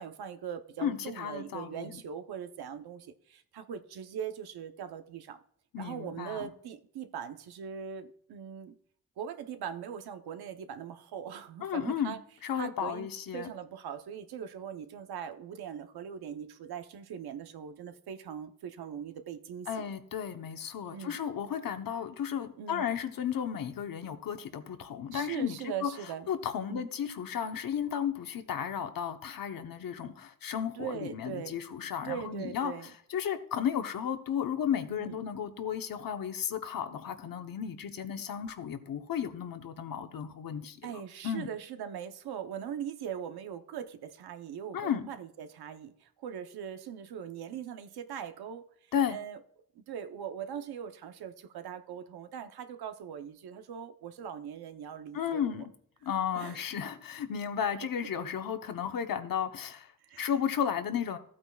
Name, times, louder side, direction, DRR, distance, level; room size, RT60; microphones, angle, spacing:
voice 1, 0.0-5.4 5.8-8.8 9.2-12.2 12.5-19.8 20.9-21.2 22.6-22.9 25.1-26.3 26.6-26.9 30.7-31.6 32.0-32.9 34.9-35.2 40.8-48.7 49.1-49.4 49.7-55.6 56.3-56.6 60.0-60.3, right 8 dB, 90° right, 0.9 m, -41 dB
voice 2, 0.8-2.0 5.7-6.5 11.6-12.2 12.4-13.5 19.7-25.9 26.3-32.7 33.1-41.5 44.7-45.1 48.9-49.2 55.1-55.6 56.0-59.9 60.2-61.2, left 8 dB, 65° left, 1.0 m, -34 dB
15.0 x 8.7 x 2.3 m
wide cardioid pair, 135°, 37 cm